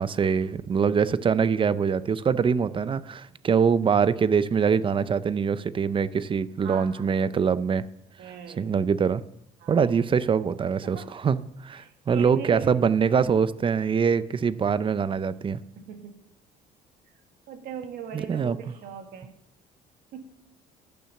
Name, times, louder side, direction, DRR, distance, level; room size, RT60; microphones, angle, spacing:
voice 1, 0.0-7.8 8.6-9.2 9.7-15.6 18.1-18.6, right 6 dB, 30° right, 16 dB, 0.5 m, -24 dB
voice 2, 6.6-7.2 8.2-8.6 9.6-9.8 10.8-11.1 11.8-12.8 15.8-16.2 17.5-19.4 20.1-20.2, right 7 dB, 75° right, 5 dB, 2.0 m, -40 dB
11.5 x 7.1 x 6.5 m, 0.75 s
cardioid pair, 110°, 17 cm